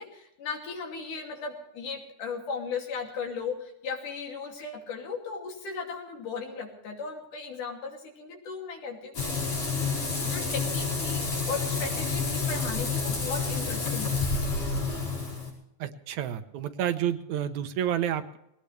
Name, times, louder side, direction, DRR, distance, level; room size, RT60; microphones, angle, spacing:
voice 1, 0.0-14.2, left 5 dB, 80° left, 2 dB, 4.3 m, -37 dB
Frying (food), 9.1-15.5, left 4 dB, 65° left, 6.4 m, -29 dB
voice 2, 15.8-18.4, right 10 dB, 70° right, 10 dB, 2.2 m, -30 dB
20.0 x 18.5 x 3.3 m, 0.79 s
omnidirectional pair, 3.6 m